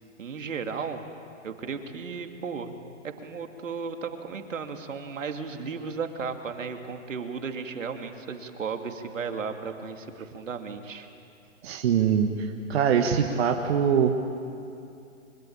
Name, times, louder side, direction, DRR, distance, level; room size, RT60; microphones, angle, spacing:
voice 1, 0.2-1.0 1.4-2.8 3.2-11.1, right 5 dB, 75° right, 5 dB, 2.7 m, -35 dB
voice 2, 11.6-14.2, right 7 dB, 50° right, 3 dB, 1.8 m, -23 dB
24.0 x 23.5 x 8.7 m, 2.6 s
hypercardioid pair, 135°, 39 cm